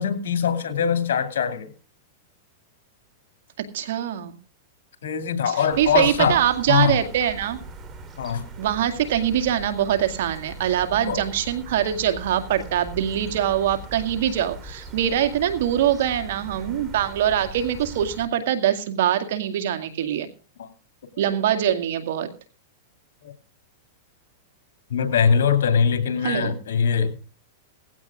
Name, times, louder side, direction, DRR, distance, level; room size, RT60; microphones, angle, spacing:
voice 1, 0.0-1.7 5.0-6.4 6.7-7.0 8.2-8.5 11.0-11.2 18.4-18.5 20.6-20.7 23.2-23.3 24.9-27.2, left 7 dB, 80° left, 10 dB, 2.5 m, -22 dB
voice 2, 3.7-4.4 5.5-7.6 8.6-20.3 21.2-22.3 26.2-26.5, right 10 dB, 70° right, 8 dB, 2.1 m, -23 dB
sound 1, 5.7-18.3, right 1 dB, 25° right, 3.9 m, -40 dB
18.0 x 16.0 x 2.5 m, 0.37 s
hypercardioid pair, 125°, 0 cm